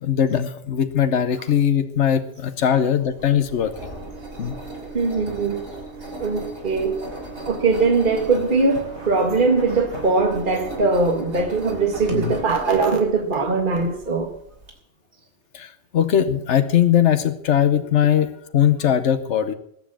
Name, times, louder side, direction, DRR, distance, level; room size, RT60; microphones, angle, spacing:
voice 1, 0.0-3.9 4.4-4.6 12.1-12.4 15.5-19.6, left 9 dB, 85° left, 10 dB, 1.2 m, -20 dB
Engine, 3.0-14.7, right 2 dB, 80° right, 3.6 m, -36 dB
voice 2, 4.9-5.6 6.2-7.0 7.5-14.3, right 3 dB, 45° right, 2 dB, 1.8 m, -21 dB
20.0 x 7.3 x 7.5 m, 0.72 s
omnidirectional pair, 1.2 m